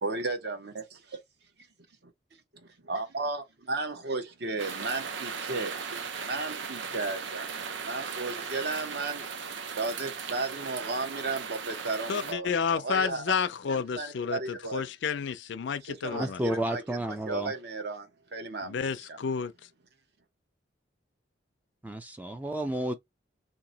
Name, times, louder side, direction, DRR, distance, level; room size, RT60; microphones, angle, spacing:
voice 1, 0.0-1.2 2.8-5.7 6.2-7.5 7.8-9.2 9.8-13.3 13.7-14.8 15.9-19.2, right 3 dB, 55° right, 0.9 m, -34 dB
sound 1, 4.6-12.3, right 5 dB, 70° right, 0.6 m, -37 dB
voice 2, 12.1-16.4 18.6-19.5, left 6 dB, 65° left, 0.4 m, -30 dB
voice 3, 16.1-17.5 21.8-22.9, right 1 dB, 10° right, 0.3 m, -31 dB
2.9 x 2.6 x 3.9 m
head